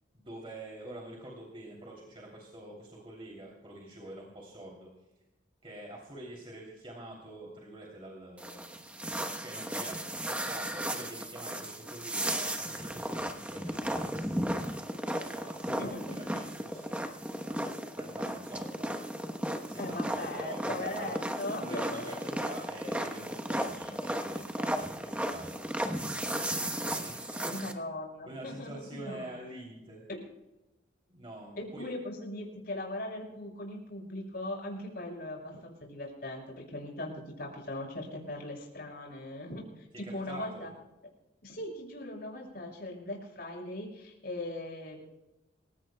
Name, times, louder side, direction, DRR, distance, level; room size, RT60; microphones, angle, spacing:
voice 1, 0.1-4.9 5.6-8.8 9.4-10.0 10.3-15.8 16.1-17.0 17.4-18.9 19.5-21.2 21.6-26.5 26.9-27.5 28.2-30.0 31.1-31.9 39.9-40.8, right 1 dB, 30° right, -2 dB, 3.0 m, -46 dB
sound 1, 8.4-27.7, right 1 dB, 5° right, 1.0 m, -35 dB
voice 2, 19.8-22.3 27.5-29.3 30.1-30.2 31.6-39.6 40.0-40.7 41.4-45.0, left 1 dB, 50° left, 0 dB, 6.5 m, -39 dB
27.5 x 16.5 x 2.3 m, 0.98 s
head